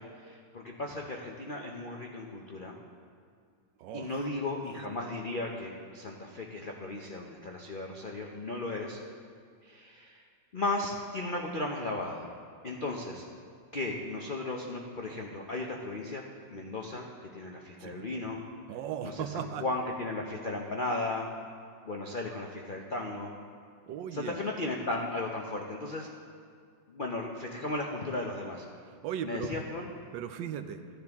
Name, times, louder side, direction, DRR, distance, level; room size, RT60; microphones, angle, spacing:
voice 1, 0.0-2.7 3.9-9.0 9.6-10.3 10.5-12.3 12.6-13.2 13.7-16.2 16.5-18.4 19.0-21.3 21.8-23.3 24.1-26.1 26.9-28.7 29.2-29.9, left 2 dB, 80° left, 0 dB, 0.4 m, -35 dB
voice 2, 3.8-4.2 17.8-18.1 18.7-19.6 23.9-24.4 29.0-29.5 30.1-30.8, right 9 dB, 75° right, 8 dB, 1.3 m, -37 dB
15.0 x 10.0 x 3.6 m, 2.2 s
omnidirectional pair, 2.1 m